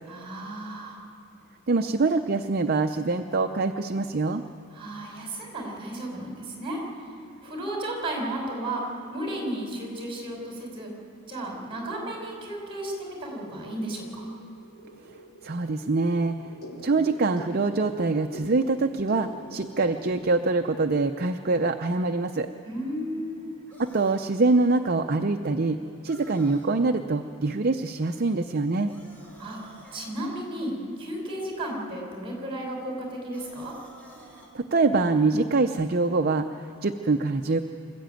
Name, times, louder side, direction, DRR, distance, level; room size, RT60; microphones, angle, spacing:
voice 1, 0.1-1.0 4.7-6.8 7.4-10.9 11.3-14.2 22.6-23.6 29.4-33.7, right 1 dB, 25° right, 0 dB, 4.8 m, -34 dB
voice 2, 1.7-4.4 15.4-16.5 16.8-22.5 23.8-25.8 26.0-28.9 34.5-37.6, right 3 dB, 45° right, 6 dB, 0.6 m, -24 dB
sound 1, 13.6-20.1, equal, 70° left, 3.3 m, -45 dB
sound 2, 23.7-24.3 26.1-26.7 28.9-30.2 33.3-34.5, right 1 dB, 10° left, 3.6 m, -51 dB
25.5 x 13.5 x 9.1 m, 2.8 s
head